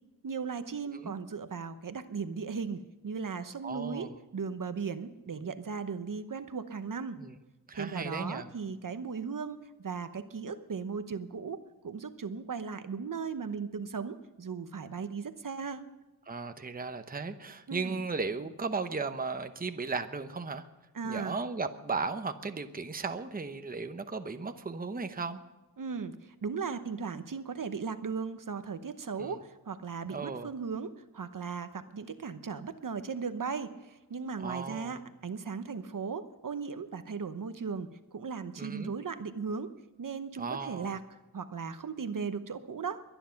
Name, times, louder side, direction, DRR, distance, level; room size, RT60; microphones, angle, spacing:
voice 1, 0.2-7.2 7.7-15.9 17.7-18.0 20.9-21.4 25.8-39.7 40.0-41.0 41.3-43.0, right 5 dB, 55° right, 10 dB, 0.9 m, -37 dB
voice 2, 3.6-4.1 5.4-5.5 7.2-7.4 7.7-8.5 16.3-20.7 21.0-25.4 29.2-29.3 30.1-30.5 34.4-35.0 38.6-38.9 40.4-41.0, right 4 dB, 25° right, 8 dB, 0.9 m, -36 dB
22.5 x 10.0 x 5.8 m, 1.1 s
wide cardioid pair, 100°, 38 cm